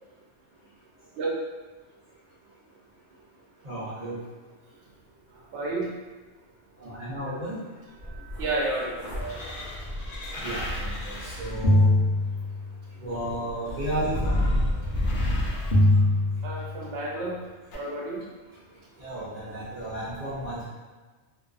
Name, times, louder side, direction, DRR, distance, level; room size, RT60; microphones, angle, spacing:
voice 1, 3.6-4.2 6.8-7.6 10.4-11.9 13.0-14.4 19.0-20.7, right 1 dB, 45° right, -11 dB, 0.6 m, -33 dB
voice 2, 5.3-5.9 8.1-9.6 14.8-15.2 15.9-16.0 16.4-17.4 17.7-18.2, right 2 dB, 80° right, -2 dB, 0.9 m, -32 dB
sound 1, 8.0-12.9 13.7-17.0 17.7-17.8, left 1 dB, 70° left, 0.8 m, -25 dB
2.5 x 2.3 x 2.4 m, 1.3 s
omnidirectional pair, 1.1 m